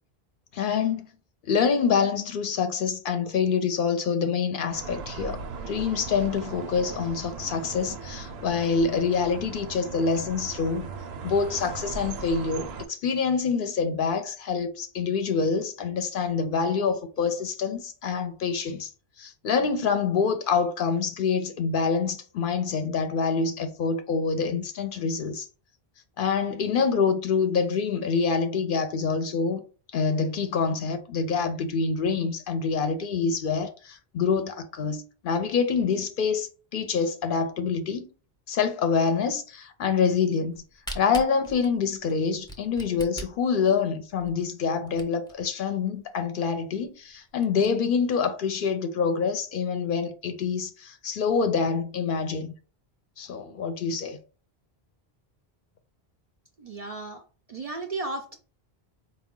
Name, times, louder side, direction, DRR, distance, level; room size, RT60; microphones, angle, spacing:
voice 1, 0.5-1.1 1.5-5.4 5.7-10.9 11.2-18.9 19.2-25.5 26.2-29.6 29.9-38.1 38.5-40.6 40.9-52.5 53.2-54.2, left 5 dB, 65° left, 0.7 m, -26 dB
sound 1, 4.7-12.9, right 4 dB, 80° right, 0.8 m, -38 dB
Camera, 40.5-45.4 46.0-46.1 46.3-46.4 46.8-46.9 47.3-47.7, right 1 dB, 5° left, 0.6 m, -41 dB
voice 2, 56.6-57.2 57.5-58.4, right 2 dB, 50° right, 0.5 m, -34 dB
4.5 x 2.2 x 3.6 m
omnidirectional pair, 1.0 m